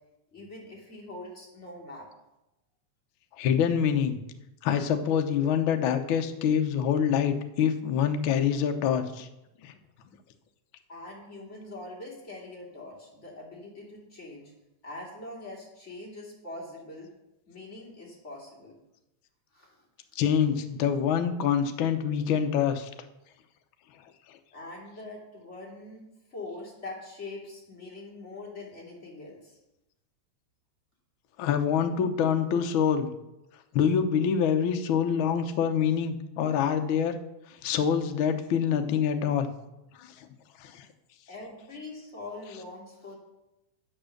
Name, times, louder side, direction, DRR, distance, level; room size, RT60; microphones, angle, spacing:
voice 1, 0.3-2.1 10.9-14.5 14.8-17.1 17.5-18.8 19.5-19.8 24.5-26.1 26.3-29.6 41.3-43.1, left 2 dB, 25° left, -3 dB, 2.7 m, -43 dB
voice 2, 3.4-4.2 4.6-9.3 9.6-9.7 20.2-22.9 24.3-24.4 31.4-33.1 33.7-37.1 37.6-39.5 39.9-40.3 40.6-40.9, left 8 dB, 80° left, 6 dB, 1.1 m, -26 dB
8.8 x 7.3 x 6.5 m, 0.95 s
omnidirectional pair, 3.3 m